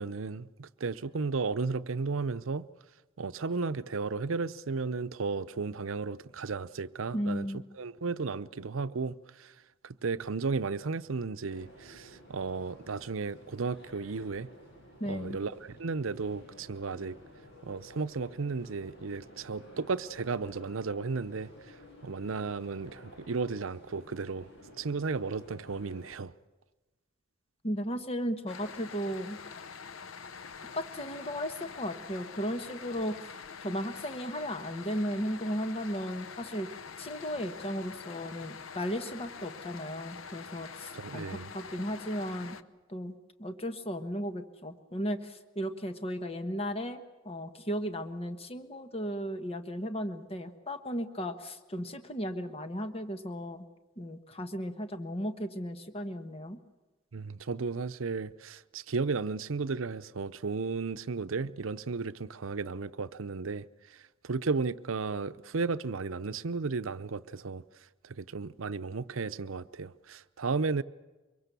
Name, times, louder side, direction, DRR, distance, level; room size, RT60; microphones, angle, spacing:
voice 1, 0.0-2.7 3.2-7.5 7.8-9.5 9.8-14.5 15.1-17.2 17.6-21.7 22.0-24.5 24.8-26.3 40.9-41.5 57.1-67.6 68.0-70.8, right 4 dB, 75° right, 0.7 m, -34 dB
voice 2, 7.1-7.6 15.0-15.4 27.6-29.4 30.7-33.3 33.6-36.7 37.0-42.6 42.9-43.1 43.4-53.7 54.0-56.6, equal, 30° left, 1.3 m, -35 dB
sound 1, 11.5-26.2, equal, 60° left, 7.3 m, -53 dB
sound 2, 28.5-42.6, left 6 dB, 85° left, 0.8 m, -45 dB
24.0 x 22.5 x 6.9 m
head